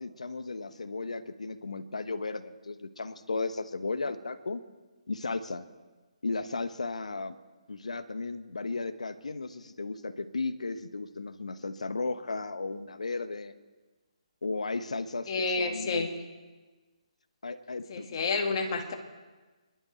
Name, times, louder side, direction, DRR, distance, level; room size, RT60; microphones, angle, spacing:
voice 1, 0.0-4.6 5.1-5.6 6.2-7.4 7.7-13.5 14.4-16.1 17.4-18.1, left 3 dB, 75° left, 11 dB, 1.1 m, -35 dB
voice 2, 15.3-16.1 17.9-19.0, left 4 dB, 45° left, 3 dB, 2.2 m, -29 dB
27.0 x 12.0 x 4.5 m, 1.3 s
figure-of-eight pair, 145°, 4 cm